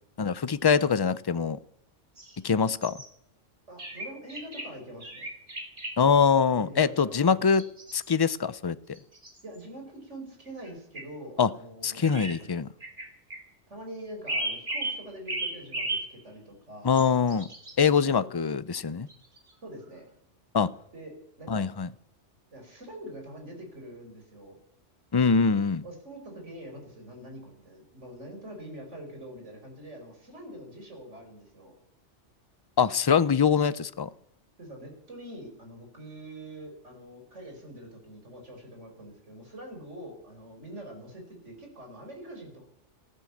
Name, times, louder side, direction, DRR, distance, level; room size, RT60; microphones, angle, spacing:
voice 1, 0.2-1.6 2.4-3.0 6.0-7.6 7.9-8.8 11.4-11.5 11.8-12.7 16.8-17.5 17.8-19.1 20.5-20.7 21.5-21.9 25.1-25.8 32.8-34.1, left 6 dB, 35° left, 0.4 m, -23 dB
sound 1, 2.2-2.4 2.8-3.1 3.8-4.7 5.0-5.9 7.5-8.4 9.0-9.6 10.5-10.7 11.0-11.1 12.0-12.3 12.8-13.4 14.3-15.0 15.3-16.1 17.0-17.7 19.1-19.5, right 2 dB, 45° right, 3.4 m, -34 dB
voice 2, 3.7-5.3 6.6-7.5 9.4-12.6 13.7-17.0 18.1-18.3 19.6-20.1 20.9-21.7 22.5-24.6 25.8-31.8 34.6-42.6, right 1 dB, 80° right, 5.3 m, -44 dB
15.0 x 12.5 x 7.1 m
omnidirectional pair, 1.2 m